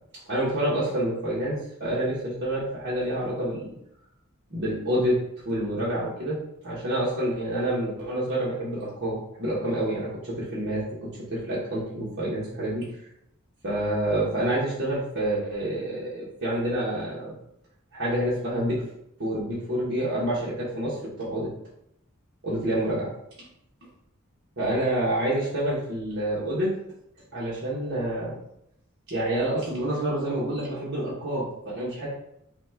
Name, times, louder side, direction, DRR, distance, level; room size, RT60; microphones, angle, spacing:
voice 1, 0.3-3.7 4.5-5.2 5.4-6.4 6.6-10.8 11.3-12.9 13.6-17.3 17.9-18.8 19.2-21.5 22.4-23.1 24.6-26.7 27.3-28.3 29.1-32.1, right 1 dB, 55° right, -8 dB, 1.2 m, -28 dB
4.1 x 2.3 x 4.4 m, 0.78 s
head